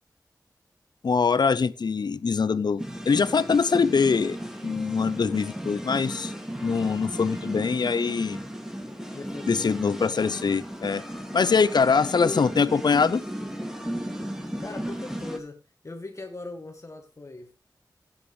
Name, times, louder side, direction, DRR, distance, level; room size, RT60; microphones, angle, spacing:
voice 1, 1.0-4.4 4.6-6.3 6.6-8.4 9.5-11.0 11.3-13.2, left 5 dB, 75° left, 0.7 m, -23 dB
sound 1, 2.8-15.4, equal, 5° right, 2.6 m, -35 dB
voice 2, 9.1-9.7 12.2-12.5 14.6-17.5, left 2 dB, 45° left, 1.9 m, -38 dB
15.5 x 9.4 x 3.3 m
wide cardioid pair, 85°, 7 cm